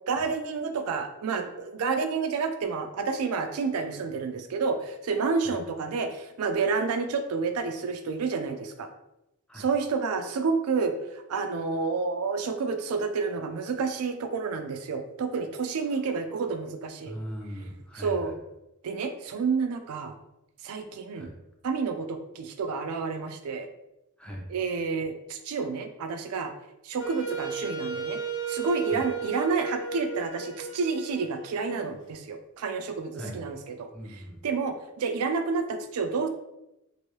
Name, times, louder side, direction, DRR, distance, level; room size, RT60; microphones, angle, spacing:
voice 1, 0.0-8.9 9.5-17.1 18.0-18.3 18.8-20.1 20.6-21.3 21.6-23.7 24.5-26.5 26.8-28.2 28.5-36.3, right 4 dB, 85° right, 6 dB, 0.4 m, -29 dB
voice 2, 17.1-18.4 21.2-21.4 24.2-24.5 28.9-29.0 33.1-33.4 33.9-34.4, equal, 5° left, -1 dB, 0.5 m, -40 dB
Wind instrument woodwind instrument, 27.0-31.9, right 6 dB, 60° left, 0.6 m, -35 dB
3.0 x 2.6 x 3.0 m, 0.88 s
head